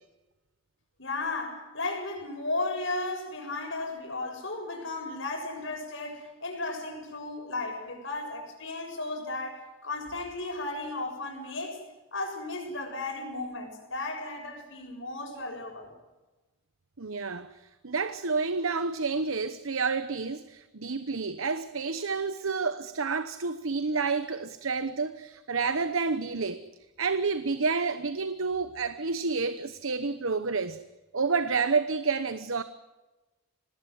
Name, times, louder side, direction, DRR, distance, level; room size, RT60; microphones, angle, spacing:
voice 1, 1.0-11.8 12.1-15.9, left 2 dB, 60° left, 7.0 m, -35 dB
voice 2, 17.0-26.6 27.0-30.8 31.1-32.6, right 4 dB, 75° right, 1.0 m, -29 dB
26.0 x 19.5 x 9.5 m
head